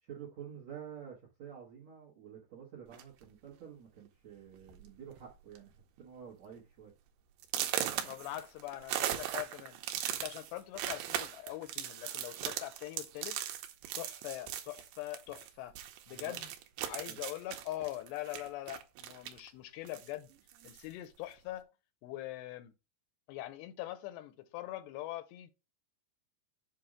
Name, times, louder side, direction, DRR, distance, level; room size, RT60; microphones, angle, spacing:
voice 1, 0.0-5.7 6.0-6.9 16.1-16.4 17.1-17.2, right 8 dB, 60° right, 1.8 m, -49 dB
sound 1, 2.9-3.2 4.1-4.2 4.5-4.8 5.1-5.6 6.0-6.1 6.6-6.7 7.4-15.5 15.8-19.5 19.9-20.9, right 11 dB, 80° right, 2.7 m, -39 dB
voice 2, 8.0-9.8 10.1-13.4 14.0-15.7 16.1-16.5 16.8-20.3 20.6-21.6 22.0-22.7 23.3-25.5, left 15 dB, 85° left, 2.8 m, -42 dB
7.6 x 2.6 x 4.9 m
omnidirectional pair, 4.8 m